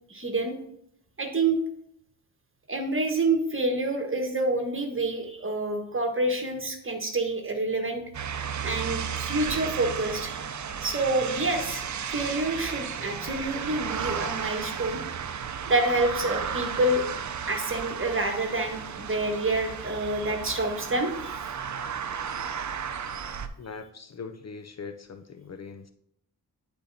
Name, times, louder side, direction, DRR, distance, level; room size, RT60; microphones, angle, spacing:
voice 1, 0.1-0.5 1.2-1.6 2.7-8.0 8.6-10.3 10.8-15.0 15.7-17.0 17.4-21.3, right 2 dB, 30° right, 4 dB, 1.4 m, -27 dB
sound 1, 8.1-23.5, right 7 dB, 50° right, 0.6 m, -34 dB
voice 2, 23.6-25.9, left 5 dB, 45° left, 7 dB, 0.5 m, -41 dB
10.0 x 4.3 x 2.7 m, 0.72 s
cardioid pair, 55°, 39 cm